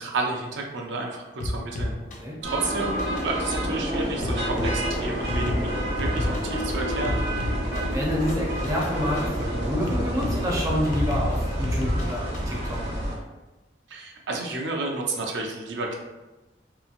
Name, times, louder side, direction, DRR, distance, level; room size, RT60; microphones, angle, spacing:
voice 1, 0.0-1.9 2.4-7.2 13.9-15.9, right 3 dB, 85° right, 0 dB, 0.5 m, -31 dB
sound 1, 1.4-12.6, left 1 dB, 45° left, 0.4 m, -32 dB
sound 2, 2.4-13.2, equal, 70° right, 0.9 m, -28 dB
voice 2, 7.7-12.9, equal, 20° right, -3 dB, 0.4 m, -28 dB
2.8 x 2.5 x 2.5 m, 1.1 s
head